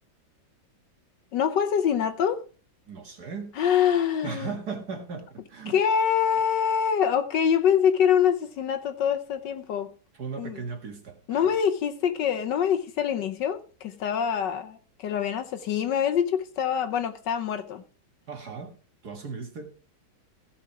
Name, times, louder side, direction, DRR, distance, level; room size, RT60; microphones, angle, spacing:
voice 1, 1.3-2.4 3.6-4.5 5.7-9.9 10.4-10.6 11.3-17.8, left 8 dB, 65° left, 1.4 m, -25 dB
voice 2, 2.9-3.5 4.2-5.8 10.2-11.5 18.3-18.8 19.0-19.7, right 5 dB, 50° right, 2.3 m, -37 dB
15.5 x 6.0 x 4.7 m
omnidirectional pair, 2.2 m